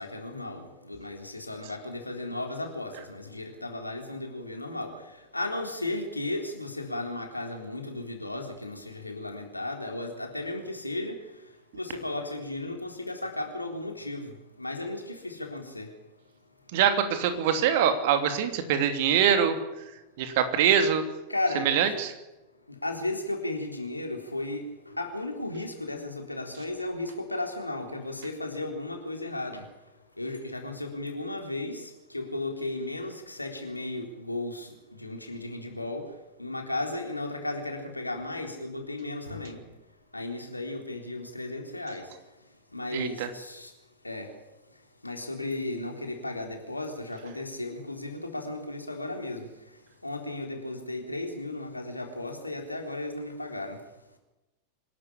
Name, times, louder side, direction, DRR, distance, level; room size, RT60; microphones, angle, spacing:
voice 1, 0.0-4.9 5.3-11.1 11.7-14.3 14.6-15.9 21.3-21.9 22.7-29.6 30.2-36.0 36.4-39.6 40.1-42.1 42.7-43.7 44.0-44.3 45.0-49.5 50.0-53.8, left 2 dB, 85° left, 3 dB, 3.9 m, -35 dB
voice 2, 16.7-19.6 20.2-21.0 21.6-22.1 42.9-43.3, right 8 dB, 50° right, 8 dB, 2.9 m, -23 dB
26.0 x 12.0 x 10.0 m, 1.0 s
figure-of-eight pair, 90°, 0 cm